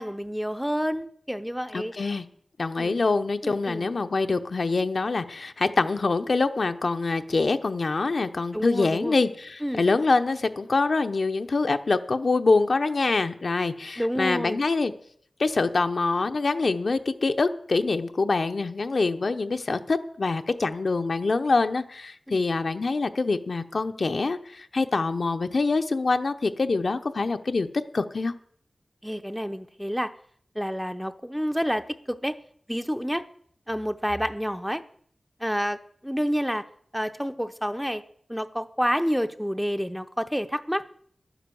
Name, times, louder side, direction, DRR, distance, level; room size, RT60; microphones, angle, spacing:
voice 1, 0.0-1.9 2.8-3.0 3.4-4.0 8.5-9.2 9.6-9.9 14.0-14.6 22.3-22.4 29.0-30.1 30.5-32.4 32.7-33.2 33.7-34.8 35.4-36.6 36.9-38.0 38.3-40.8, equal, ahead, 9 dB, 0.7 m, -29 dB
voice 2, 1.7-2.2 2.6-14.9 15.4-27.7 27.9-28.3, left 3 dB, 60° left, 8 dB, 0.8 m, -25 dB
11.0 x 10.0 x 7.0 m, 0.63 s
wide cardioid pair, 95°, 0 cm